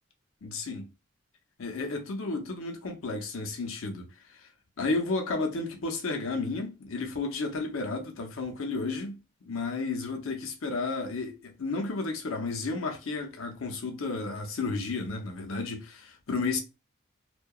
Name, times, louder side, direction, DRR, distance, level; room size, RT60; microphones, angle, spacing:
voice 1, 0.4-0.9 1.6-4.5 4.8-16.6, left 3 dB, 80° left, 0.6 m, -32 dB
2.7 x 2.2 x 2.2 m
head